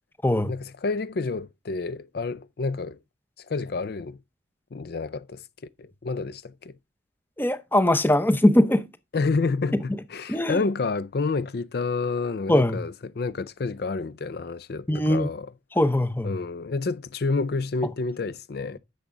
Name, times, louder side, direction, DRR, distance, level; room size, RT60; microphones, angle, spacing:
voice 1, 0.5-3.0 3.4-4.2 4.7-5.5 5.8-6.7 9.1-15.5 16.2-18.8, left 4 dB, 55° left, 0.4 m, -29 dB
voice 2, 7.4-8.9 10.3-10.6 12.5-12.8 14.9-15.3 15.7-16.3, left 1 dB, 10° left, 0.7 m, -21 dB
10.0 x 6.8 x 3.7 m
head